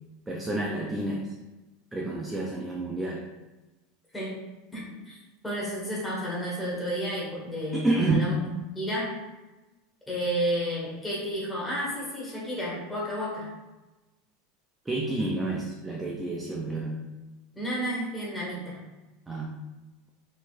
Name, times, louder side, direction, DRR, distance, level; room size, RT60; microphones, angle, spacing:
voice 1, 0.3-1.3 1.9-3.2 7.7-8.4 14.9-17.0 19.3-19.5, right 2 dB, 10° right, -2 dB, 0.4 m, -29 dB
voice 2, 4.7-5.2 5.4-8.5 8.7-9.1 10.1-13.5 17.5-18.8, equal, 5° left, -6 dB, 1.5 m, -31 dB
4.5 x 4.0 x 2.5 m, 1.1 s
supercardioid pair, 155°, 0 cm